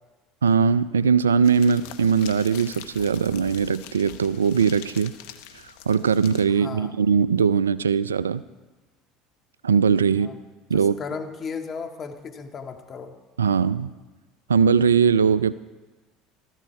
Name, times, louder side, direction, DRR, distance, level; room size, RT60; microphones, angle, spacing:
voice 1, 0.4-5.1 5.9-8.4 9.6-10.3 10.7-10.9 13.4-13.9 14.5-15.5, right 6 dB, 90° right, 17 dB, 0.4 m, -20 dB
sound 1, 1.4-6.5, left 11 dB, 70° left, 0.8 m, -43 dB
voice 2, 6.5-6.9 10.1-10.4 10.7-13.1, left 5 dB, 40° left, 5 dB, 1.8 m, -35 dB
15.0 x 13.5 x 4.6 m, 1.2 s
hypercardioid pair, 70°, 0 cm